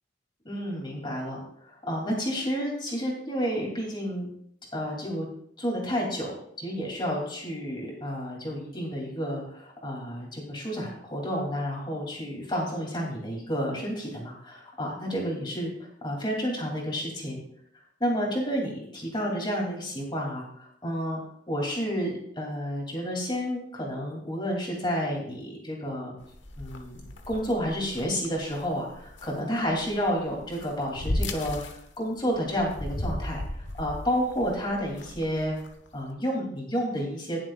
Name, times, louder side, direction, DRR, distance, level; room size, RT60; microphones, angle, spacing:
voice 1, 0.4-4.3 4.7-5.3 5.6-15.7 16.0-17.4 18.0-21.2 21.5-26.2 26.6-35.6 35.9-37.4, equal, 25° left, -2 dB, 3.0 m, -30 dB
sound 1, 26.2-36.0, left 1 dB, 80° left, 1.2 m, -37 dB
19.0 x 7.4 x 2.5 m, 0.68 s
head